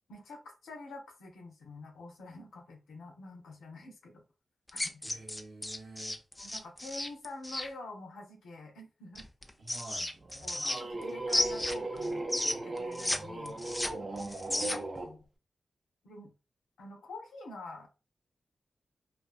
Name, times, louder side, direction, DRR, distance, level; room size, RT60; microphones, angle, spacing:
voice 1, 0.1-4.2 4.7-5.0 6.4-9.3 10.4-12.3 12.6-13.6 15.0-15.3 16.0-16.3 16.8-17.9, left 2 dB, 85° left, 2 dB, 0.6 m, -47 dB
sound 1, 4.7-7.7 9.1-11.0 11.3-13.2 13.4-15.0, left 1 dB, 20° left, 0.4 m, -33 dB
voice 2, 5.0-6.2 9.6-10.1 14.1-15.1, right 2 dB, 75° right, -2 dB, 0.9 m, -49 dB
sound 2, 10.2-15.1, right 2 dB, 45° right, 0.6 m, -37 dB
2.4 x 2.3 x 2.3 m, 0.30 s
supercardioid pair, 40°, 0 cm